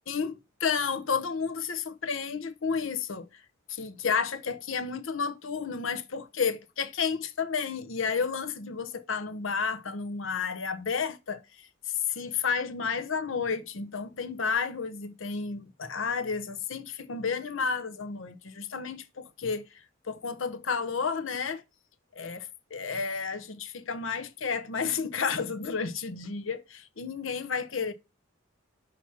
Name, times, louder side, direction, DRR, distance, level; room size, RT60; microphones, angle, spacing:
voice 1, 0.1-3.3 3.7-19.6 20.0-21.6 22.1-27.9, left 5 dB, 75° left, 0.8 m, -31 dB
6.0 x 2.9 x 5.7 m
head